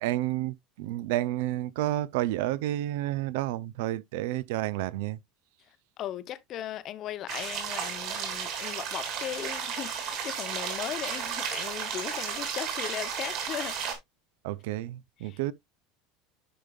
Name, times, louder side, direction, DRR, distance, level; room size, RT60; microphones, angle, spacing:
voice 1, 0.0-5.2 14.4-15.5, right 14 dB, 75° right, 0.5 m, -30 dB
voice 2, 6.0-13.7 15.2-15.4, left 12 dB, 40° left, 0.7 m, -37 dB
sound 1, 7.3-13.9, right 7 dB, 50° right, 2.6 m, -33 dB
10.0 x 5.2 x 2.3 m
cardioid pair, 155°, 0 cm